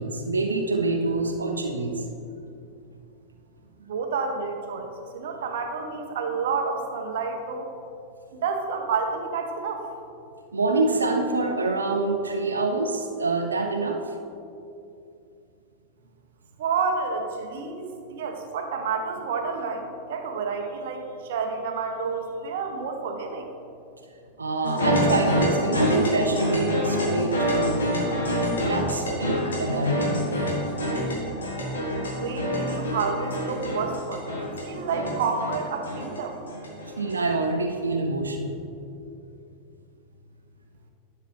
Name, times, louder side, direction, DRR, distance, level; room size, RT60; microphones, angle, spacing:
voice 1, 0.0-2.0 10.5-14.1 24.4-28.2 28.6-30.2 37.0-38.6, right 2 dB, 75° right, 4 dB, 0.6 m, -26 dB
voice 2, 3.8-7.7 8.4-9.8 16.6-23.5 32.1-36.4, right 5 dB, 55° right, 4 dB, 0.9 m, -29 dB
sound 1, 24.6-37.3, equal, 70° left, 1.9 m, -26 dB
11.0 x 6.8 x 3.3 m, 2.7 s
figure-of-eight pair, 90°, 0 cm